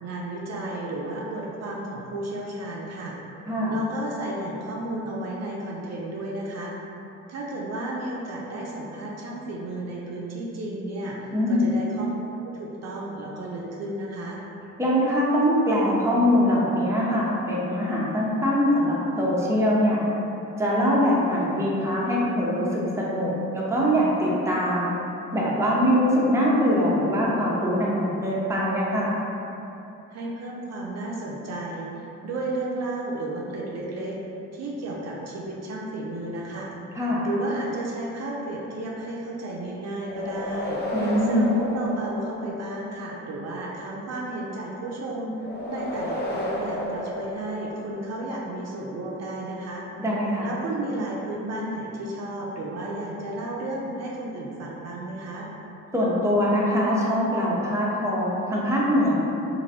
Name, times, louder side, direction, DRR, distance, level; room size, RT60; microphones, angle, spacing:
voice 1, 0.0-3.2 3.7-6.7 7.3-12.2 12.4-14.4 30.1-34.2 34.5-36.7 37.2-40.8 41.3-49.8 50.4-55.5, right 1 dB, 55° right, -3 dB, 0.5 m, -33 dB
voice 2, 11.3-11.7 14.8-20.1 20.6-24.9 25.3-29.1 37.0-37.2 40.9-41.5 50.0-50.5 55.9-59.1, equal, 10° right, -6 dB, 0.6 m, -23 dB
sound 1, 40.0-42.8 45.4-48.1, equal, 35° left, 0.5 m, -32 dB
3.0 x 2.6 x 2.6 m, 2.9 s
cardioid pair, 80°, 32 cm